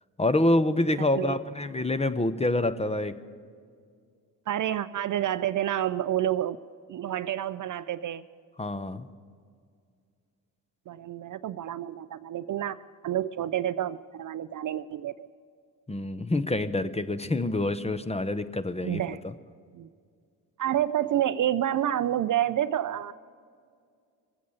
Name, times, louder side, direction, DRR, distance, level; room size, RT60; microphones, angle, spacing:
voice 1, 0.2-3.1 8.6-9.1 15.9-19.0, left 1 dB, 15° left, 12 dB, 0.8 m, -26 dB
voice 2, 1.0-1.4 4.5-6.6 6.9-8.2 10.9-12.8 13.0-15.3 18.8-19.2 19.7-19.9 20.6-23.1, right 11 dB, 45° right, 16 dB, 0.5 m, -29 dB
22.0 x 8.4 x 7.1 m, 2.2 s
hypercardioid pair, 50°, 44 cm